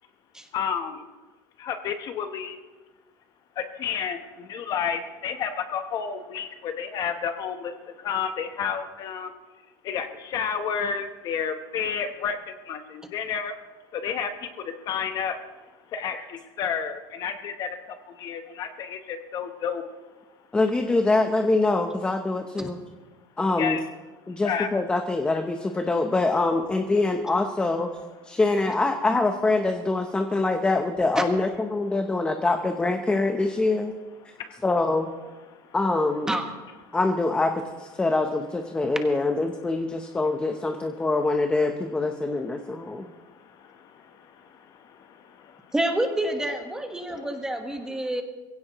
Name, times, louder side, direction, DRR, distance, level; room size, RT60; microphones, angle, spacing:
voice 1, 0.5-1.1 1.6-2.6 3.6-9.3 9.8-13.5 13.9-15.4 15.9-19.8 23.6-23.8 24.4-24.7 34.3-34.5 35.6-35.7 42.8-45.7 47.1-47.2, left 7 dB, 35° left, 7 dB, 0.9 m, -31 dB
voice 2, 20.5-22.8 23.4-23.8 24.3-27.9 28.2-33.9 34.6-35.1 35.7-36.3 36.9-43.1, left 2 dB, 10° left, 5 dB, 0.7 m, -24 dB
voice 3, 45.7-48.2, right 1 dB, 5° right, 4 dB, 1.3 m, -28 dB
22.0 x 16.5 x 3.0 m, 1.3 s
cardioid pair, 165°, 11 cm